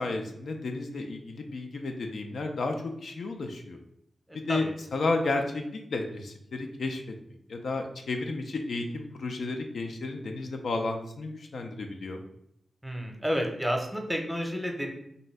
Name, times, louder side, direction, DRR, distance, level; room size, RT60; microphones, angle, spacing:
voice 1, 0.0-2.7 3.0-3.8 4.3-4.7 4.9-7.0 7.5-12.2, left 3 dB, 75° left, 4 dB, 0.3 m, -32 dB
voice 2, 4.3-4.7 12.8-14.9, equal, 5° right, 2 dB, 0.7 m, -30 dB
2.6 x 2.2 x 3.2 m, 0.73 s
cardioid pair, 40°, 0 cm